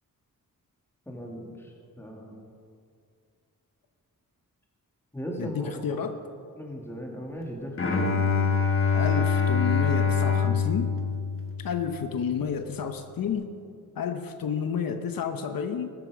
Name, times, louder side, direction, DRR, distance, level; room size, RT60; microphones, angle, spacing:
voice 1, 1.1-2.4 5.1-6.1 6.5-8.1, equal, 5° left, -1 dB, 2.3 m, -38 dB
voice 2, 5.4-6.2 8.9-10.9 11.6-13.5 14.0-15.9, left 7 dB, 75° left, 7 dB, 1.0 m, -30 dB
Bowed string instrument, 7.8-11.9, left 6 dB, 35° left, 1.4 m, -24 dB
19.5 x 8.8 x 6.2 m, 2.3 s
wide cardioid pair, 160°, 35 cm